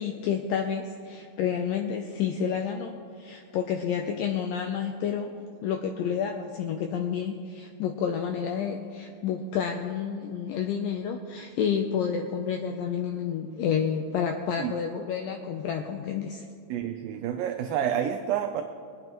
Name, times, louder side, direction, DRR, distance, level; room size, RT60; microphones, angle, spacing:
voice 1, 0.0-5.3 5.6-16.5, left 7 dB, 85° left, 4 dB, 2.0 m, -30 dB
voice 2, 16.7-18.6, right 9 dB, 80° right, 5 dB, 2.1 m, -29 dB
23.0 x 9.2 x 3.0 m, 2.4 s
omnidirectional pair, 4.6 m